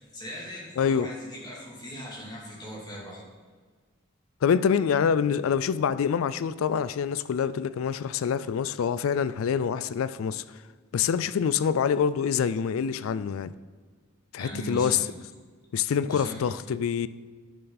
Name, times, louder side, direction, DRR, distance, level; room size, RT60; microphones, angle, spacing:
voice 1, 0.0-3.2 14.4-15.1 16.1-16.5, equal, 20° left, 2.6 m, -39 dB
voice 2, 0.8-1.1 4.4-10.4 10.9-13.5 14.3-15.0 15.7-17.1, left 7 dB, 80° left, 0.4 m, -26 dB
11.0 x 6.9 x 4.0 m
head